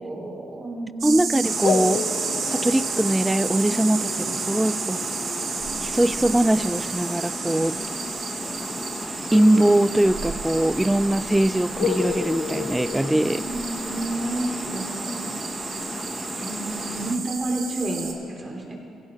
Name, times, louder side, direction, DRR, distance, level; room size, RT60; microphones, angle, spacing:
voice 1, 0.0-1.4 13.4-15.4 16.3-18.7, right 1 dB, 30° right, -1 dB, 3.4 m, -31 dB
voice 2, 1.0-2.0 2.5-5.0 5.8-7.8 9.3-13.4, right 1 dB, 10° right, 17 dB, 0.3 m, -21 dB
sound 1, 1.0-18.1, right 5 dB, 60° right, 1.8 m, -32 dB
Water, 1.4-17.2, left 2 dB, 20° left, 1.0 m, -35 dB
sound 2, 1.6-7.1 9.3-10.8 11.0-11.1 11.8-14.0, left 7 dB, 70° left, 0.7 m, -33 dB
18.5 x 17.0 x 3.1 m, 2.4 s
cardioid pair, 90°, 0 cm